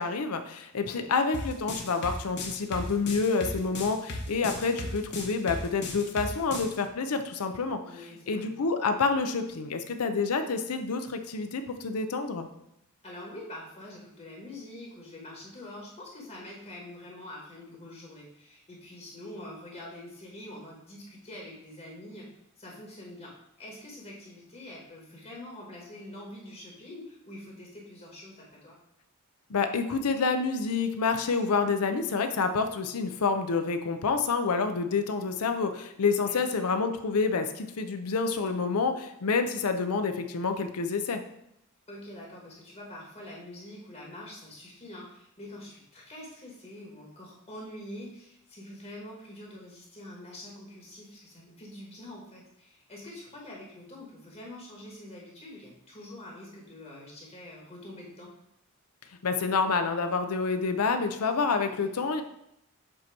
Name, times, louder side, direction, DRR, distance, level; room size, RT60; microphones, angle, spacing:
voice 1, 0.0-7.8 8.3-12.5 29.5-41.2 59.2-62.2, left 4 dB, 85° left, 8 dB, 0.6 m, -28 dB
sound 1, 1.3-6.7, left 2 dB, 50° left, 1.1 m, -36 dB
voice 2, 7.9-8.5 13.0-22.3 22.6-28.8 36.2-36.4 41.9-58.3 61.6-61.9, left 1 dB, 30° left, -3 dB, 1.2 m, -45 dB
7.6 x 2.9 x 4.6 m, 0.80 s
head